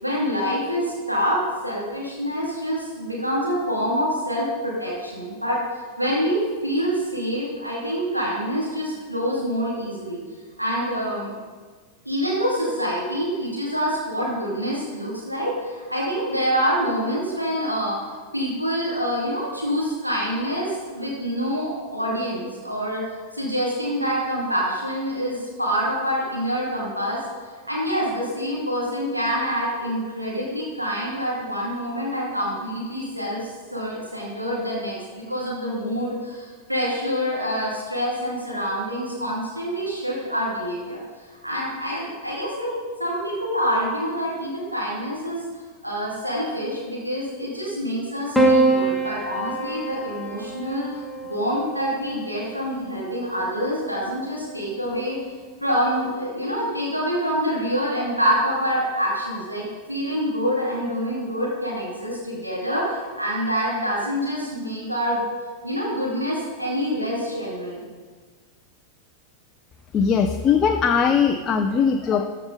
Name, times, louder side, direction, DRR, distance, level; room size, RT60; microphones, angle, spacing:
voice 1, 0.0-5.6 6.0-10.2 10.6-11.3 12.0-23.0 23.3-27.2 27.7-41.0 41.4-42.7 43.0-45.5 45.8-55.2 55.6-65.2 65.6-67.8, equal, 90° right, -4 dB, 2.1 m, -26 dB
Piano, 48.3-52.8 54.0-54.7, right 2 dB, ahead, 1.3 m, -24 dB
voice 2, 69.9-72.3, left 6 dB, 25° left, 6 dB, 0.5 m, -20 dB
14.0 x 6.6 x 3.7 m, 1.5 s
figure-of-eight pair, 90°, 0 cm